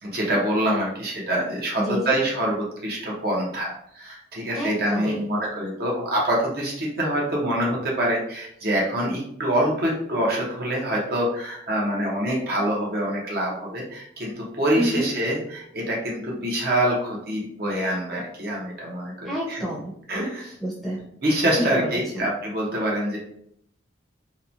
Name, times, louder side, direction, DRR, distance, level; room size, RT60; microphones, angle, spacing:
voice 1, 0.0-19.6 20.1-20.5 21.2-23.2, right 1 dB, 55° right, -3 dB, 0.8 m, -25 dB
voice 2, 1.8-2.1 4.6-5.3 14.7-15.1 19.2-19.9 20.6-21.0 21.6-22.3, equal, ahead, -7 dB, 0.7 m, -28 dB
2.9 x 2.1 x 2.6 m, 0.70 s
head